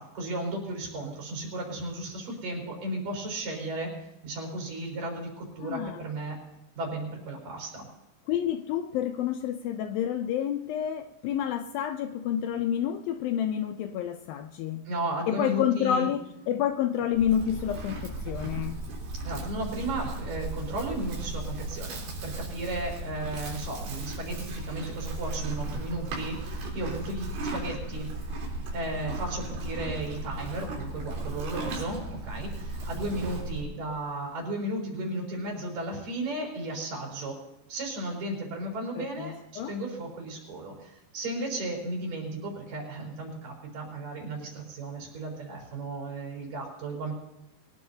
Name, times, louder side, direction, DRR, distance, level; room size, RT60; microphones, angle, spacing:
voice 1, 0.0-3.9 4.2-6.4 6.8-7.9 14.9-16.1 19.2-28.1 28.7-37.4 37.7-47.1, right 1 dB, 50° right, 0 dB, 6.0 m, -35 dB
voice 2, 5.6-6.0 8.3-14.9 15.3-18.8 39.0-39.8, left 9 dB, 80° left, 6 dB, 2.1 m, -29 dB
Livestock farm animals working animals, 17.1-33.7, right 2 dB, 90° right, 6.1 m, -36 dB
23.0 x 19.5 x 2.9 m, 0.95 s
omnidirectional pair, 5.0 m